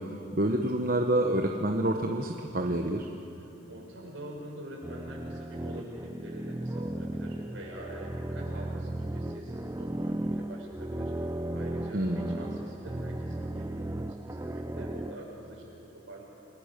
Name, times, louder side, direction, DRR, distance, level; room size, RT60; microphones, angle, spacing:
voice 1, 0.3-3.1 11.9-12.4, right 1 dB, 45° right, 2 dB, 1.0 m, -27 dB
voice 2, 3.7-15.6 15.9-16.2, right 1 dB, 65° right, -3 dB, 7.4 m, -45 dB
sound 1, 4.8-15.2, right 1 dB, 15° right, 0.5 m, -35 dB
29.5 x 20.5 x 6.7 m, 3.0 s
head